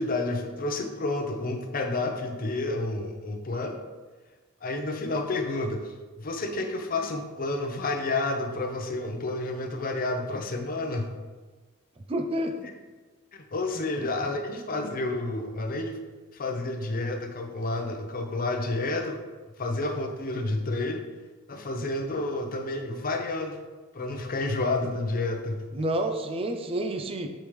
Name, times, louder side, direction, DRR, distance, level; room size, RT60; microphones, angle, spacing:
voice 1, 0.0-3.8 4.6-11.1 13.3-16.0 16.3-19.2 19.6-21.0 21.5-23.6 23.9-25.6, left 2 dB, 40° left, 5 dB, 0.7 m, -30 dB
voice 2, 12.1-12.6 13.7-13.8 25.7-27.3, right 1 dB, 25° right, 5 dB, 0.4 m, -29 dB
7.1 x 5.1 x 3.1 m, 1.3 s
head